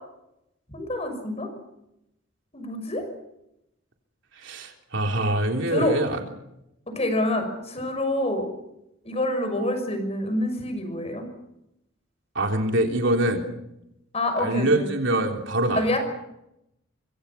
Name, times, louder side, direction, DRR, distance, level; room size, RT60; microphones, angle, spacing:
voice 1, 0.7-1.5 2.5-3.0 5.7-5.9 6.9-8.5 9.0-11.3 14.1-14.9 15.7-16.0, left 1 dB, 30° left, 7 dB, 6.0 m, -27 dB
voice 2, 4.4-6.2 12.4-13.4 14.4-15.8, right 1 dB, 60° right, 3 dB, 3.6 m, -24 dB
25.5 x 25.5 x 5.9 m, 0.83 s
head